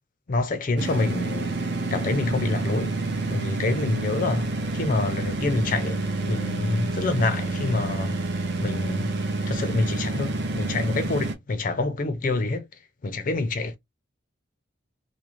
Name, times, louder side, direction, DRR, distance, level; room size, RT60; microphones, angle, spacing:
voice 1, 0.3-1.5 1.9-2.9 3.3-8.2 8.6-9.1 9.5-12.6 13.0-13.8, left 3 dB, 45° left, 0.4 m, -27 dB
sound 1, 0.8-11.4, right 2 dB, 55° right, 0.6 m, -28 dB
2.4 x 2.0 x 2.9 m
head